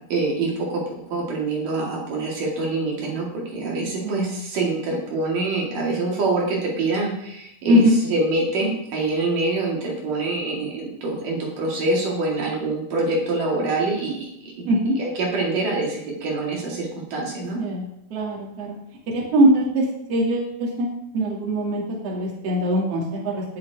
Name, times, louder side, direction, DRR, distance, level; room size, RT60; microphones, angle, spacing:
voice 1, 0.1-0.8 1.1-14.7 15.0-17.6, right 3 dB, 70° right, -2 dB, 3.8 m, -25 dB
voice 2, 4.0-4.4 7.7-8.0 14.7-14.9 17.6-17.8 18.1-18.7 19.1-19.8 20.1-20.5 20.8-23.4, equal, 45° right, -3 dB, 3.1 m, -21 dB
18.5 x 6.5 x 3.5 m, 0.79 s
omnidirectional pair, 4.0 m